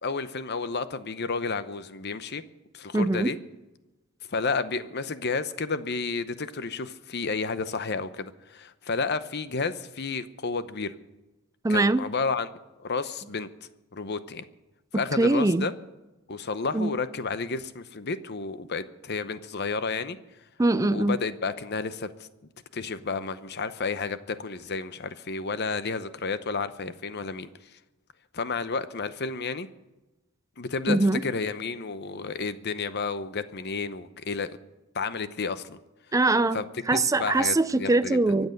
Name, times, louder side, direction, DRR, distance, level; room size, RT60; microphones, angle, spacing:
voice 1, 0.0-2.4 2.7-3.4 4.3-10.9 11.7-12.5 12.8-13.5 13.9-14.4 14.9-15.7 16.3-20.2 20.9-22.3 22.7-27.8 28.3-29.7 30.6-34.6 34.9-35.8 36.5-38.2, left 4 dB, 50° left, 12 dB, 0.8 m, -31 dB
voice 2, 2.9-3.3 11.6-12.1 14.9-15.7 16.7-16.9 20.6-21.2 30.9-31.2 36.1-36.6 36.9-38.5, right 2 dB, 15° right, 14 dB, 0.5 m, -22 dB
24.0 x 8.1 x 6.6 m, 1.0 s
head